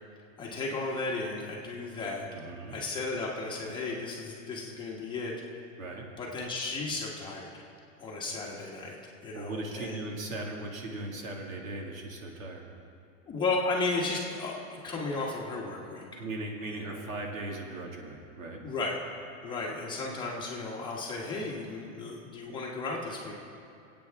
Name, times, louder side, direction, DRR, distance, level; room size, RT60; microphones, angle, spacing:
voice 1, 0.4-5.3 6.2-7.5 8.0-9.0 9.2-10.0 13.3-16.2 16.8-17.0 18.6-19.0 19.4-23.3, left 3 dB, 10° left, -3 dB, 1.2 m, -34 dB
voice 2, 2.3-2.8 5.8-6.1 9.3-12.6 16.2-18.6, right 2 dB, 85° right, 1 dB, 2.2 m, -38 dB
25.0 x 8.6 x 3.5 m, 2.5 s
supercardioid pair, 165°, 40 cm